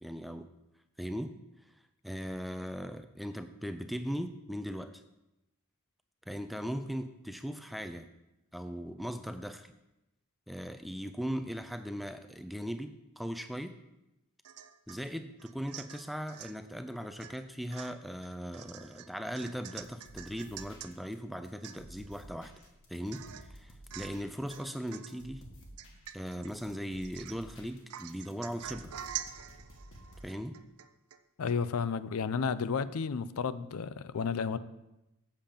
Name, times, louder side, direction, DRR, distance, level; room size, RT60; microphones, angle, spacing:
voice 1, 0.0-0.5 1.0-1.4 2.0-5.0 6.3-8.1 8.5-9.7 10.5-13.8 14.9-22.5 22.9-25.5 26.1-28.9 30.2-30.6, equal, ahead, 9 dB, 0.3 m, -39 dB
Domestic sounds home sounds / Chink clink / Drip, 14.4-15.0 15.4-16.6 17.2-17.4 17.7-20.9 21.3-21.4 21.6-22.1 22.6-22.7 23.1-23.5 23.9-24.2 24.5-25.2 25.8-26.5 27.0-27.5 27.9-31.2 31.5-31.6, right 11 dB, 85° right, 0.5 m, -46 dB
sound 1, 19.8-21.1 21.4-30.3, equal, 60° left, 1.6 m, -53 dB
voice 2, 31.4-34.6, left 5 dB, 75° left, 15 dB, 0.4 m, -32 dB
7.5 x 6.8 x 5.2 m, 0.93 s
head